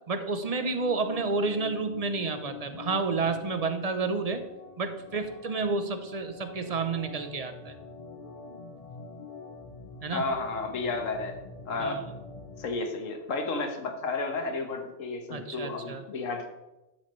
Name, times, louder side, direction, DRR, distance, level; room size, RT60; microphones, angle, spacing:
voice 1, 0.1-4.4 4.8-7.7 10.0-10.3 11.8-12.1 15.3-16.0, right 4 dB, 40° right, 8 dB, 0.6 m, -30 dB
Organ, 0.5-12.7, left 5 dB, 40° left, 0.6 m, -45 dB
voice 2, 10.1-11.4 11.7-12.0 12.6-16.5, left 3 dB, 85° left, 5 dB, 1.5 m, -32 dB
12.0 x 7.0 x 3.1 m, 1.0 s
omnidirectional pair, 1.3 m